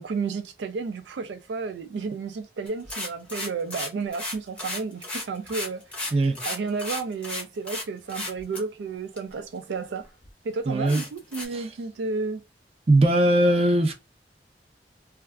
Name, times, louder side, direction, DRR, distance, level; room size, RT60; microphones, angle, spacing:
voice 1, 0.0-10.1 10.4-12.4, right 4 dB, 85° right, 0.4 m, -32 dB
sound 1, 2.7-7.8 8.1-8.6 9.2-9.3 9.8-9.9 10.2-10.3 10.9-11.5, left 1 dB, 5° left, 0.7 m, -33 dB
voice 2, 10.7-11.0 11.5-11.6 12.9-13.9, right 1 dB, 35° right, 0.5 m, -20 dB
2.3 x 2.3 x 3.3 m
head